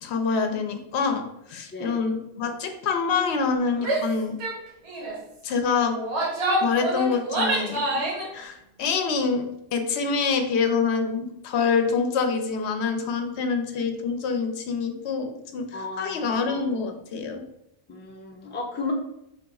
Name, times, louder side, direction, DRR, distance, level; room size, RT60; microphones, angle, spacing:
voice 1, 0.0-4.3 5.4-6.0 6.6-8.0 8.3-9.5 9.7-17.4, left 5 dB, 80° left, 5 dB, 0.9 m, -26 dB
Female speech woman speaking / Yell, 3.8-4.1 4.4-4.6 4.9-5.2 5.9-8.3, right 1 dB, 80° right, 1.1 m, -26 dB
voice 2, 15.7-16.6 17.9-18.9, left 3 dB, 15° left, 0 dB, 0.4 m, -34 dB
4.0 x 2.3 x 3.9 m, 0.82 s
omnidirectional pair, 1.1 m